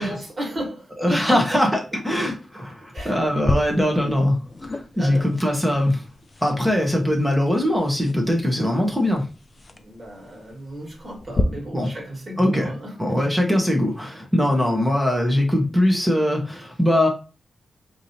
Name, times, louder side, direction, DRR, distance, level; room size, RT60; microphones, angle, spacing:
voice 1, 0.0-1.8 2.9-3.2 5.0-5.3 9.7-13.3, right 1 dB, 40° right, 1.9 m, -33 dB
voice 2, 1.0-1.8 2.0-6.0 6.4-9.2 11.7-11.9 12.4-12.7 13.0-17.1, left 1 dB, 5° right, 1.0 m, -21 dB
sound 1, 3.0-11.4, left 2 dB, 35° left, 0.4 m, -34 dB
4.8 x 2.8 x 2.7 m
wide cardioid pair, 105°, 0 cm